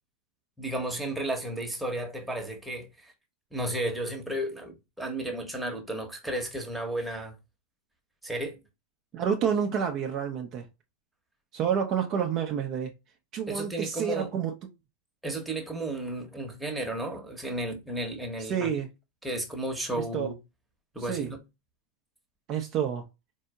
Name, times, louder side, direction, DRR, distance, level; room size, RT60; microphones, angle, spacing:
voice 1, 0.6-3.1 3.5-7.3 8.2-8.6 13.5-14.3 15.2-18.7 19.2-20.3 20.9-21.4, right 1 dB, 5° right, 1.0 m, -33 dB
voice 2, 9.1-10.6 11.5-12.9 13.3-14.5 18.4-18.9 19.9-20.3 21.1-21.3 22.5-23.0, right 8 dB, 35° right, 0.5 m, -29 dB
4.3 x 2.7 x 2.2 m
figure-of-eight pair, 90°, 0 cm